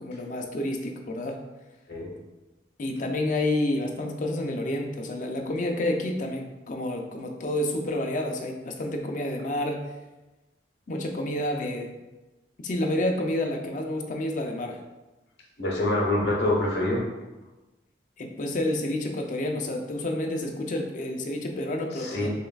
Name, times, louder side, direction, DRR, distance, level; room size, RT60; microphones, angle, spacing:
voice 1, 0.0-1.4 2.8-9.9 10.9-11.9 12.6-14.8 18.2-22.3, left 1 dB, 45° left, 2 dB, 0.4 m, -29 dB
voice 2, 15.6-17.0 22.0-22.3, left 1 dB, 65° left, -2 dB, 1.0 m, -25 dB
6.4 x 2.4 x 2.3 m, 1.1 s
head